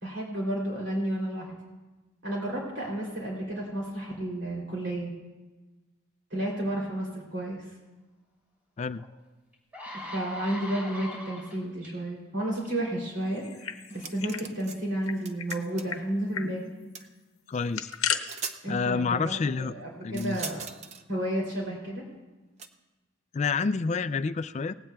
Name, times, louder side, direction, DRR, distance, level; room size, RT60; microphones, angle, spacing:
voice 1, 0.0-1.5 2.2-5.1 6.3-7.6 9.9-16.6 18.6-20.6 21.1-22.1, right 1 dB, 55° right, -3 dB, 3.0 m, -32 dB
sound 1, 9.0-9.1 9.5-11.9 12.6-12.8, left 1 dB, 10° right, 2.9 m, -41 dB
sound 2, 13.4-14.4 14.7-14.8 15.1-15.6 15.9-16.0 16.3-16.5 17.5-18.2, left 8 dB, 85° left, 0.8 m, -33 dB
sound 3, 13.9-14.8 15.0-16.0 16.9-17.1 17.9-18.0 18.2-18.6 20.1-21.0 22.6-22.7, right 5 dB, 35° right, 0.6 m, -40 dB
voice 2, 17.5-17.9 18.7-19.7 20.0-20.4 23.3-24.7, left 4 dB, 35° left, 14 dB, 0.3 m, -28 dB
18.5 x 16.0 x 2.3 m, 1.2 s
head